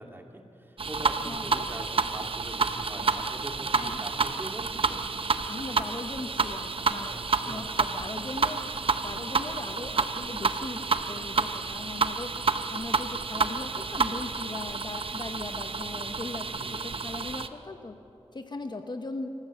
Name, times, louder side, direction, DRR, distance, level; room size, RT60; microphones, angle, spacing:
voice 1, 0.0-5.0 7.1-7.8 12.5-12.6 16.5-17.1, right 1 dB, 20° right, 2 dB, 2.4 m, -43 dB
sound 1, 0.8-17.5, right 4 dB, 55° right, 0.8 m, -29 dB
voice 2, 1.2-1.7 3.7-4.1 5.5-8.8 9.0-12.3 12.7-18.0 18.3-19.3, left 2 dB, 45° left, 6 dB, 1.1 m, -39 dB
26.5 x 15.5 x 7.3 m, 2.9 s
wide cardioid pair, 90°, 11 cm